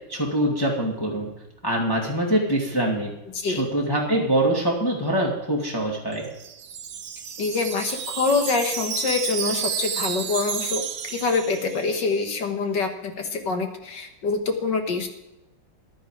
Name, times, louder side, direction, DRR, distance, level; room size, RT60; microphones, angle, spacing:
voice 1, 0.1-1.3 1.6-3.1 3.5-6.3, right 1 dB, 10° left, -2 dB, 2.2 m, -24 dB
voice 2, 3.3-3.7 7.4-15.1, left 4 dB, 60° left, 5 dB, 2.0 m, -25 dB
Wind chime, 6.1-12.1, right 8 dB, 75° right, 1.6 m, -31 dB
15.0 x 11.0 x 4.9 m, 0.94 s
omnidirectional pair, 2.2 m